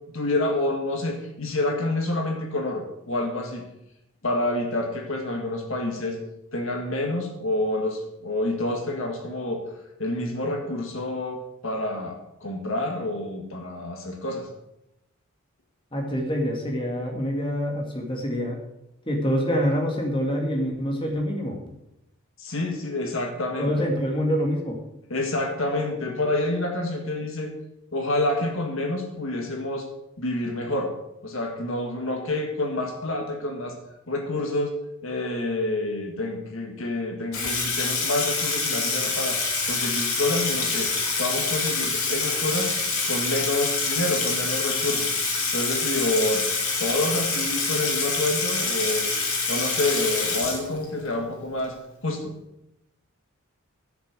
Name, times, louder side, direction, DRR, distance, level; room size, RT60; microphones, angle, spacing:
voice 1, 0.1-3.6 4.2-6.2 6.5-9.6 10.0-14.5 22.4-23.9 25.1-27.5 27.9-29.9 30.2-30.9 31.2-33.8 34.1-34.8 35.0-40.9 41.2-42.7 43.1-45.1 45.5-46.4 46.8-49.1 49.5-51.7 52.0-52.3, left 2 dB, 65° left, 3 dB, 1.8 m, -28 dB
voice 2, 15.9-18.6 19.1-21.6 23.6-24.8, equal, 25° left, 0 dB, 1.9 m, -26 dB
Water tap faucet / Sink (filling or washing), 37.3-51.1, left 4 dB, 80° left, 3.0 m, -26 dB
12.5 x 6.5 x 6.1 m, 0.87 s
head